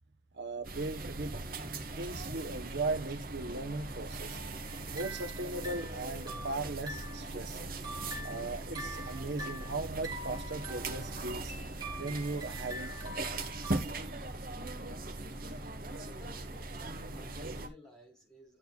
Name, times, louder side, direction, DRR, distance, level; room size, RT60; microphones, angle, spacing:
voice 1, 0.3-1.3 2.0-4.4 4.9-7.6 8.2-11.5 12.0-13.2 14.0-14.2, right 3 dB, 70° right, 1.0 m, -38 dB
sound 1, 0.6-17.7, right 2 dB, 50° right, 1.5 m, -40 dB
sound 2, 3.0-12.4, equal, 40° left, 4.0 m, -55 dB
sound 3, 4.6-7.3 7.7-13.8, right 1 dB, 25° right, 3.6 m, -45 dB
voice 2, 15.9-18.6, left 1 dB, 5° left, 3.9 m, -55 dB
11.5 x 6.8 x 2.3 m
head